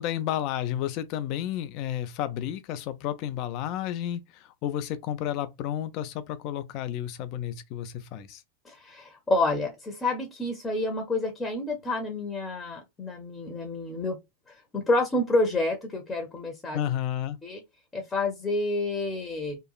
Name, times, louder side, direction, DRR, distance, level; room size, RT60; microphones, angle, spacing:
voice 1, 0.0-8.4 16.7-17.4, left 11 dB, 40° left, 0.4 m, -31 dB
voice 2, 8.6-14.2 14.7-16.8 17.4-17.6 17.9-19.6, left 2 dB, 15° left, 0.7 m, -28 dB
2.9 x 2.3 x 2.3 m
figure-of-eight pair, 90°, 0 cm